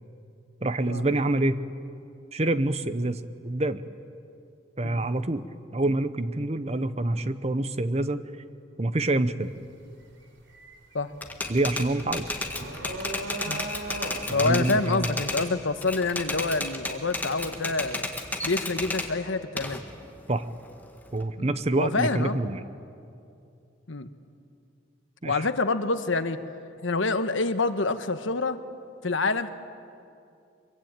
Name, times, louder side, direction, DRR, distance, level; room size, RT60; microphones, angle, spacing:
voice 1, 0.6-1.6 2.3-3.8 4.8-5.5 5.7-8.2 8.8-9.5 11.5-12.3 14.3-15.1 20.3-20.4 21.1-22.6 25.2-25.5, right 2 dB, 35° right, 12 dB, 0.8 m, -26 dB
sound 1, 9.4-9.7 10.0-17.1, right 2 dB, 65° right, 3.8 m, -39 dB
Typewriter, 11.2-15.5 15.8-19.1 19.6-21.2, left 2 dB, 10° left, 1.7 m, -32 dB
voice 2, 14.3-18.1 18.4-19.8 21.4-21.5 21.8-22.4 23.9-24.1 25.2-26.4 26.8-28.6 29.0-29.5, left 3 dB, 80° left, 10 dB, 1.2 m, -27 dB
24.0 x 23.5 x 8.9 m, 2.5 s
head